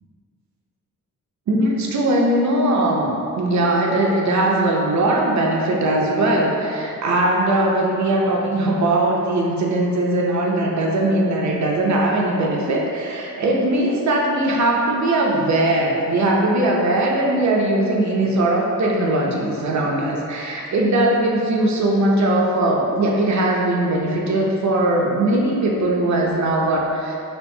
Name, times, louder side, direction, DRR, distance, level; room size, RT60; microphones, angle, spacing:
voice 1, 1.5-27.2, right 1 dB, 60° right, -2 dB, 0.6 m, -20 dB
4.4 x 2.4 x 2.7 m, 2.5 s
wide cardioid pair, 135°, 32 cm